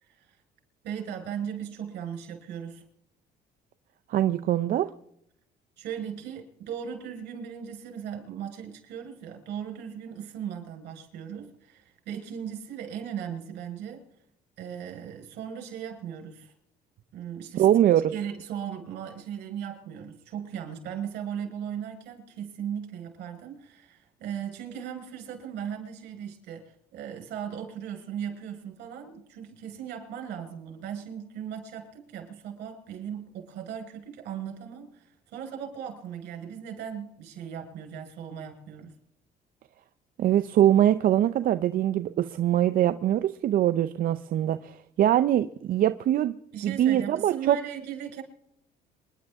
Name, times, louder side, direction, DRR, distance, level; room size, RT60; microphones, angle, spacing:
voice 1, 0.8-2.8 5.8-14.1 14.6-16.5 17.1-17.7 18.1-38.9 46.5-48.2, right 8 dB, 80° right, 2 dB, 5.0 m, -37 dB
voice 2, 4.1-4.9 17.6-18.1 40.2-46.3 46.6-47.6, right 11 dB, 55° right, 10 dB, 0.6 m, -23 dB
27.5 x 11.0 x 3.6 m, 0.74 s
cardioid pair, 110°, 17 cm